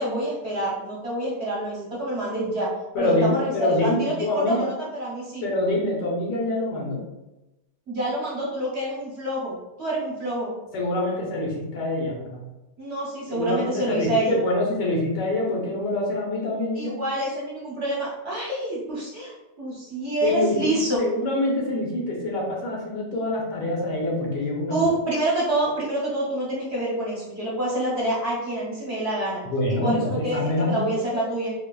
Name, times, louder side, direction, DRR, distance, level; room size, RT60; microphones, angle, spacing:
voice 1, 0.0-2.7 3.0-5.5 7.9-10.5 12.8-14.4 16.7-21.0 24.7-29.4 29.8-30.4 30.7-31.5, right 1 dB, 50° right, -5 dB, 0.8 m, -27 dB
voice 2, 2.9-4.7 5.4-7.0 10.7-12.4 13.3-17.0 20.2-24.8 29.4-30.8 31.1-31.2, left 1 dB, 80° left, -2 dB, 1.5 m, -25 dB
4.9 x 2.4 x 2.2 m, 0.99 s
omnidirectional pair, 1.8 m